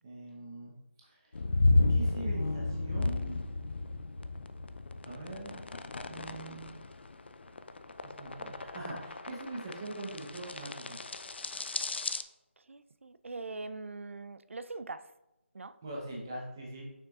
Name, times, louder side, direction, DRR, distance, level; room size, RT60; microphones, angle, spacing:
voice 1, 0.0-0.7 1.0-1.2 1.9-3.4 5.1-5.7 6.1-6.8 8.0-11.0 15.8-17.0, right 2 dB, 15° right, 0.7 m, -42 dB
sound 1, 1.3-12.2, left 2 dB, 55° left, 0.4 m, -32 dB
voice 2, 12.7-15.1 15.5-15.8, right 3 dB, 80° right, 0.4 m, -42 dB
6.5 x 6.0 x 2.4 m
figure-of-eight pair, 175°, 7 cm